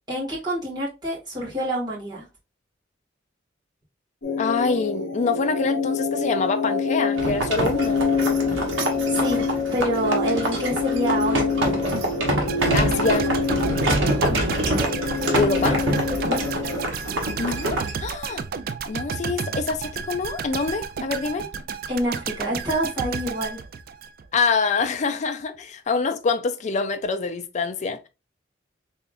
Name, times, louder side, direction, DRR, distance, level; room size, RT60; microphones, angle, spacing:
voice 1, 0.1-2.3 9.1-11.8 14.3-14.5 16.3-16.4 21.9-23.6, right 1 dB, 20° right, 2.0 m, -27 dB
sound 1, 4.2-16.9, left 4 dB, 65° left, 0.8 m, -26 dB
voice 2, 4.4-8.0 12.7-13.3 15.3-15.8 17.4-18.4 18.9-21.5 24.3-28.1, left 4 dB, 40° left, 0.4 m, -25 dB
sound 2, 7.2-17.9, right 1 dB, 85° right, 1.1 m, -26 dB
sound 3, 12.5-24.5 24.8-25.0, right 6 dB, 50° right, 0.4 m, -32 dB
3.5 x 3.4 x 2.4 m
head